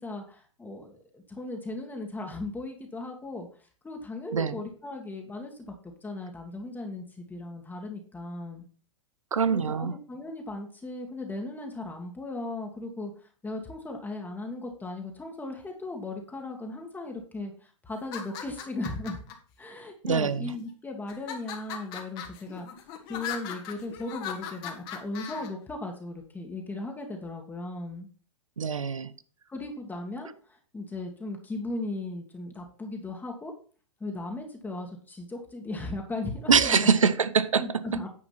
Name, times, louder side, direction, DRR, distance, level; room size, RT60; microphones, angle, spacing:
voice 1, 0.0-3.5 3.8-8.6 9.5-13.1 13.4-19.2 19.6-22.7 23.1-28.1 29.5-30.3 30.7-33.5 34.0-36.8 37.6-38.1, left 2 dB, 10° left, 1.9 m, -37 dB
voice 2, 9.3-10.0 20.0-20.5 28.6-29.1 36.5-37.8, right 6 dB, 85° right, 0.8 m, -24 dB
sound 1, 18.0-19.3 20.1-20.6 21.1-25.5, left 8 dB, 45° left, 2.0 m, -39 dB
9.8 x 5.0 x 5.8 m
hypercardioid pair, 105°, 16 cm